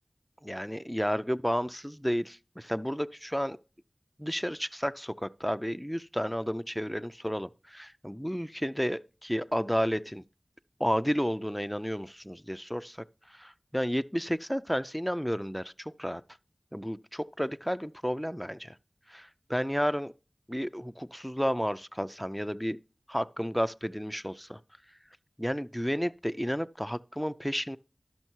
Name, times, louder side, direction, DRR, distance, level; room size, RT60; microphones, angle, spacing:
voice 1, 0.4-3.6 4.2-10.2 10.8-16.2 16.7-18.7 19.1-20.1 20.5-22.8 23.1-24.6 25.4-27.8, equal, ahead, 0.4 m, -32 dB
12.5 x 6.3 x 4.5 m
wide cardioid pair, 60°, 0 cm